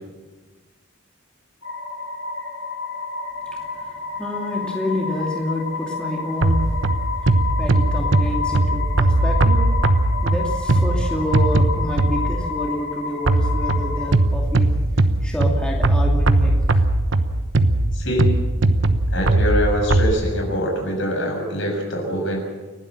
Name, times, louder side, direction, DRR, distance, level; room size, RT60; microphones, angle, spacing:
sound 1, 1.6-14.1, left 5 dB, 85° left, 5.9 m, -30 dB
voice 1, 3.5-3.8 4.2-6.6 7.2-7.3 7.6-9.6 10.2-14.7 15.2-16.8, left 1 dB, 5° left, -2 dB, 2.6 m, -28 dB
sound 2, 6.4-12.5 13.3-20.1, right 2 dB, 65° right, 1.1 m, -19 dB
voice 2, 17.9-18.3 19.1-22.4, equal, 65° left, 1 dB, 6.9 m, -23 dB
29.5 x 12.0 x 7.4 m, 1.3 s
head